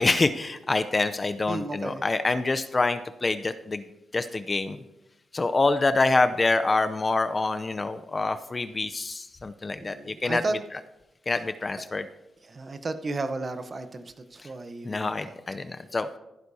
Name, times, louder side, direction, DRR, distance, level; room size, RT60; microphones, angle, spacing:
voice 1, 0.0-3.8 4.1-4.8 5.3-10.6 11.3-12.1 14.8-16.1, left 3 dB, 30° left, 10 dB, 0.6 m, -26 dB
voice 2, 1.5-2.0 9.8-10.6 11.3-11.4 12.4-15.3, right 3 dB, 40° right, 9 dB, 0.9 m, -33 dB
14.5 x 11.0 x 2.8 m, 0.94 s
cardioid pair, 85°, 0 cm